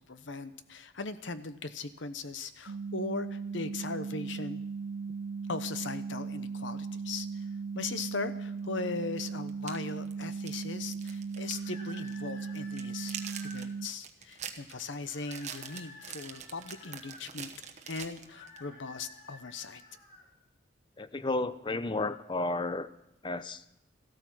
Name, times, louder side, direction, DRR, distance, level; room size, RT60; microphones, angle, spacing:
voice 1, 0.1-4.6 5.5-7.4 7.7-17.5 17.9-19.8, left 3 dB, 75° left, 12 dB, 0.9 m, -39 dB
sound 1, 2.7-13.9, right 5 dB, 65° right, 0.4 m, -38 dB
sound 2, 8.6-8.7 9.5-11.7 12.0-12.1 12.5-18.6, right 8 dB, 40° right, 1.1 m, -44 dB
sound 3, 11.4-13.7 15.1-17.3 18.2-20.3, left 2 dB, 45° left, 3.7 m, -52 dB
voice 2, 21.0-22.9 23.2-23.6, left 2 dB, 25° left, 13 dB, 0.6 m, -32 dB
14.5 x 13.0 x 6.1 m, 0.83 s
head